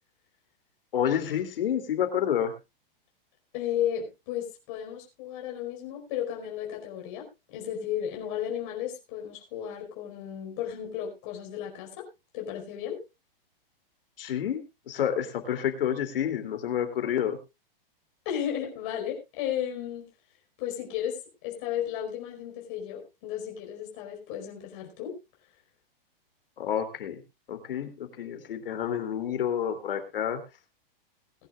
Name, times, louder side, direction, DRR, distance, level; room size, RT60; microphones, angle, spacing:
voice 1, 0.9-2.5 14.2-17.4 26.6-27.2 27.5-30.4, left 9 dB, 70° left, 7 dB, 3.1 m, -29 dB
voice 2, 3.5-12.0 12.3-13.0 18.2-20.1 20.6-25.1, left 10 dB, 35° left, 0 dB, 5.0 m, -34 dB
21.0 x 10.5 x 2.5 m, 0.25 s
hypercardioid pair, 170°, 29 cm